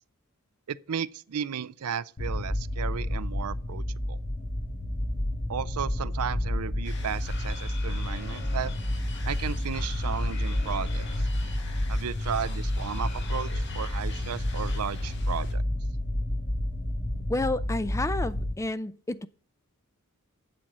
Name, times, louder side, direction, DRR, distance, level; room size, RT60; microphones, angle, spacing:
voice 1, 0.7-4.2 5.5-8.7 9.3-11.3 11.9-15.6, right 7 dB, 85° right, 0.5 m, -34 dB
sound 1, 2.2-18.5, left 1 dB, 30° left, 1.3 m, -30 dB
sound 2, 6.8-15.5, left 4 dB, 55° left, 1.8 m, -45 dB
voice 2, 17.3-19.3, left 2 dB, 15° left, 0.4 m, -30 dB
8.6 x 7.6 x 5.4 m
head